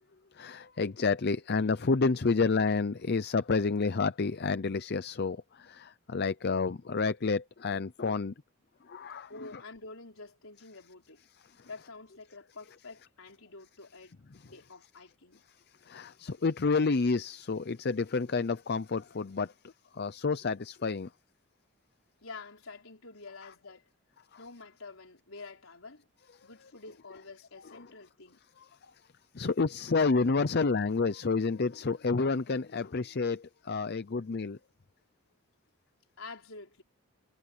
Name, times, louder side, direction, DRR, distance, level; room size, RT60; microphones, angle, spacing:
voice 1, 0.3-8.3 8.9-9.3 11.6-11.7 15.9-21.1 29.3-34.6, left 4 dB, 50° left, 0.6 m, -29 dB
voice 2, 9.3-11.2 11.6-14.2 14.4-15.4 22.2-23.9 24.4-26.1 26.4-28.4 36.2-36.8, left 3 dB, 70° left, 4.7 m, -48 dB
head